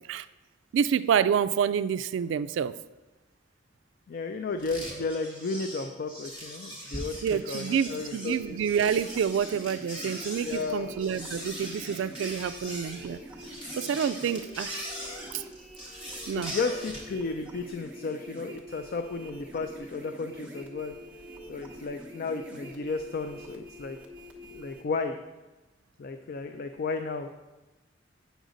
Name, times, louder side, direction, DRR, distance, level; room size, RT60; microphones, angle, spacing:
voice 1, 0.7-2.8 7.2-13.2 13.8-14.8 15.3-15.4 16.3-16.5, right 7 dB, 85° right, 13 dB, 0.3 m, -28 dB
voice 2, 4.1-8.6 10.4-10.9 13.8-13.9 16.3-21.0 21.5-24.0 24.5-25.2 26.0-27.3, left 4 dB, 50° left, 7 dB, 0.4 m, -33 dB
sound 1, 4.6-17.1, equal, 30° left, 1.9 m, -40 dB
sound 2, 8.2-24.8, equal, 5° right, 1.0 m, -45 dB
8.0 x 6.3 x 3.9 m, 1.1 s
head